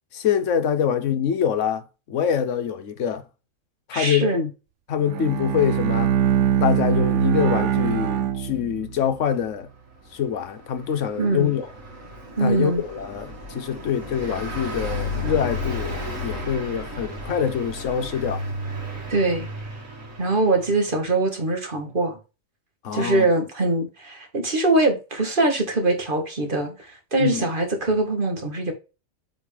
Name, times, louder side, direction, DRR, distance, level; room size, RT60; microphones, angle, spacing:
voice 1, 0.1-3.2 3.9-4.5 4.9-6.2 6.6-9.7 10.1-11.7 12.4-18.4 22.8-23.3 27.2-27.4, left 8 dB, 70° left, 1.3 m, -25 dB
voice 2, 3.9-4.4 11.2-11.5 12.4-12.8 19.1-19.5 20.2-22.2 22.9-28.7, right 2 dB, 40° right, 2.0 m, -23 dB
Bowed string instrument, 5.0-9.1, right 9 dB, 70° right, 0.9 m, -22 dB
Car passing by, 10.1-21.1, left 1 dB, 90° right, 2.8 m, -33 dB
7.7 x 4.8 x 3.5 m
omnidirectional pair, 1.3 m